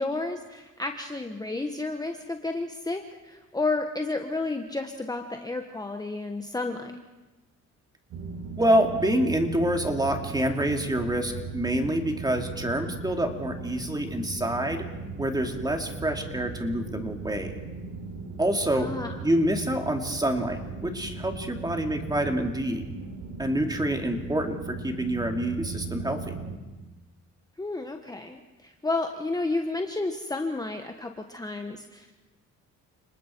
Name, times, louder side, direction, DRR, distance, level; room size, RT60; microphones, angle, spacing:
voice 1, 0.0-6.9 18.7-19.1 27.6-32.1, left 3 dB, 10° left, 5 dB, 1.2 m, -31 dB
sound 1, 8.1-26.6, right 4 dB, 80° right, 3.4 m, -38 dB
voice 2, 8.6-14.8 15.2-17.5 18.4-18.9 19.2-22.9 23.4-26.3, right 1 dB, 15° right, 3 dB, 2.7 m, -27 dB
30.0 x 19.5 x 4.6 m, 1.2 s
cardioid pair, 90°, 30 cm